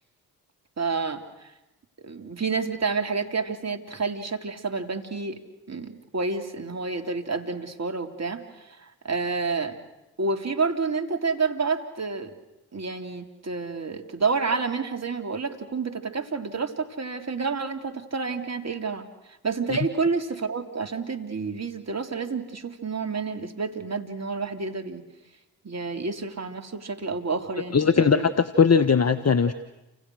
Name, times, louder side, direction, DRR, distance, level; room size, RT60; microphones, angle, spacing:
voice 1, 0.8-1.5 2.0-5.4 5.7-9.8 10.2-12.3 12.7-19.0 19.4-25.1 25.6-28.2, right 4 dB, 40° right, 5 dB, 3.7 m, -29 dB
voice 2, 27.7-29.5, left 6 dB, 40° left, 12 dB, 1.5 m, -20 dB
29.5 x 27.0 x 6.5 m, 0.98 s
hypercardioid pair, 40°, 41 cm